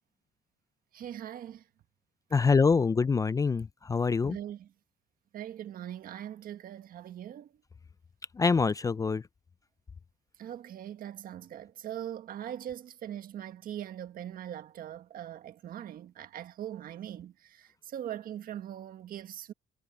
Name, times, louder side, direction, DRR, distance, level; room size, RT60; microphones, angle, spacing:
voice 1, 0.9-1.6 4.2-4.7 5.3-7.5 10.4-19.5, right 11 dB, 60° right, 1.5 m, -41 dB
voice 2, 2.3-4.4 8.4-9.2, left 5 dB, 20° left, 0.4 m, -25 dB
cardioid pair, 110°, 17 cm